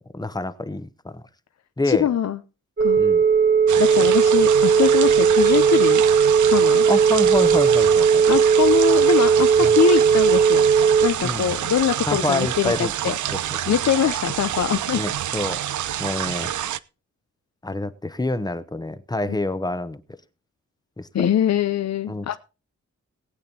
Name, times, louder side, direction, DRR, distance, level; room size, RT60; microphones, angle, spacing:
voice 1, 0.1-1.2 1.8-2.1 3.0-3.2 6.9-8.2 9.6-9.7 11.2-11.5 12.1-13.4 14.9-15.6 16.0-16.5 17.6-20.0 21.0-21.1 22.1-22.3, left 2 dB, 15° left, 0.8 m, -27 dB
voice 2, 1.8-2.4 2.8-3.0 3.8-6.0 6.5-6.8 8.3-10.7 11.0-13.2 13.7-15.0 21.1-22.4, left 9 dB, 65° left, 0.7 m, -23 dB
Telephone, 2.8-11.1, right 6 dB, 40° right, 1.5 m, -17 dB
sound 1, 3.7-16.8, right 11 dB, 85° right, 0.5 m, -28 dB
19.5 x 8.7 x 2.8 m
wide cardioid pair, 110°, 29 cm